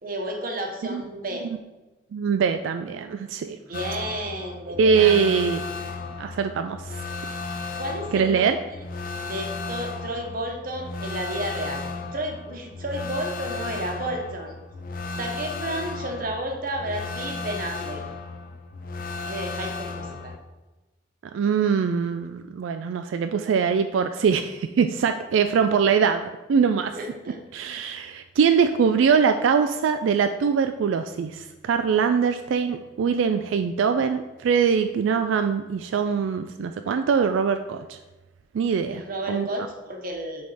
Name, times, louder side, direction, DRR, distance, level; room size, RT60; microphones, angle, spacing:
voice 1, 0.0-1.5 3.7-5.3 7.8-8.8 9.2-11.8 12.1-14.5 15.2-18.0 19.2-20.3 26.9-27.4 38.9-40.4, right 1 dB, 50° right, 2 dB, 1.0 m, -32 dB
voice 2, 2.1-3.6 4.8-5.6 6.2-7.0 8.1-8.6 21.3-26.9 27.5-38.0 38.5-39.5, right 6 dB, 85° right, 8 dB, 0.3 m, -22 dB
sound 1, 3.7-20.4, left 4 dB, 45° left, 0.5 m, -35 dB
7.6 x 3.5 x 4.1 m, 1.1 s
head